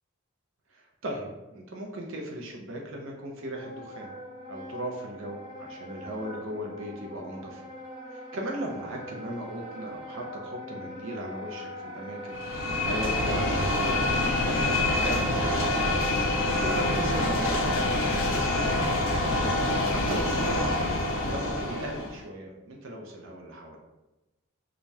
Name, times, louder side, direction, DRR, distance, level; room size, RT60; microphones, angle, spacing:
voice 1, 0.7-4.1 4.5-7.6 8.1-14.0 14.4-15.6 16.2-19.5 19.9-20.8 21.3-23.8, right 1 dB, 70° right, 0 dB, 0.6 m, -37 dB
Wind instrument woodwind instrument, 3.5-19.0, equal, 25° right, 0.7 m, -41 dB
sound 1, 12.3-22.2, left 2 dB, 70° left, 0.7 m, -26 dB
4.9 x 2.3 x 2.8 m, 1.0 s
head